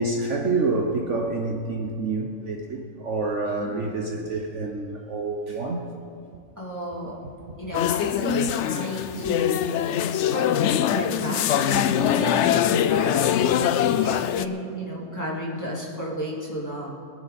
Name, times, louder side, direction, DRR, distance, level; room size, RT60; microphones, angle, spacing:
voice 1, 0.0-5.9, right 3 dB, 55° right, 1 dB, 1.3 m, -27 dB
voice 2, 3.5-4.2 6.6-7.2 7.6-9.6 10.3-16.9, equal, 10° left, -5 dB, 2.9 m, -32 dB
sound 1, 7.7-14.5, left 10 dB, 65° left, 0.7 m, -23 dB
23.5 x 10.5 x 4.2 m, 2.4 s
omnidirectional pair, 1.6 m